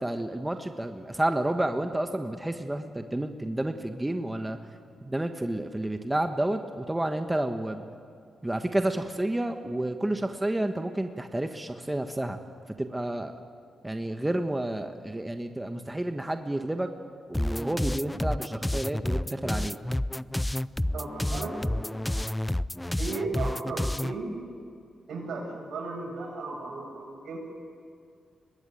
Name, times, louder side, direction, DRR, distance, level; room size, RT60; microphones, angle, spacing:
voice 1, 0.0-4.6 5.0-7.8 8.4-12.4 12.8-13.3 13.8-16.9 17.3-19.8, right 1 dB, 15° right, 6 dB, 1.4 m, -30 dB
sound 1, 17.3-24.2, left 1 dB, 10° left, 0.5 m, -30 dB
voice 2, 20.9-21.9 23.0-24.3 25.1-27.4, right 3 dB, 80° right, 0 dB, 7.6 m, -35 dB
23.5 x 20.0 x 9.3 m, 2.3 s
cardioid pair, 70°, 0 cm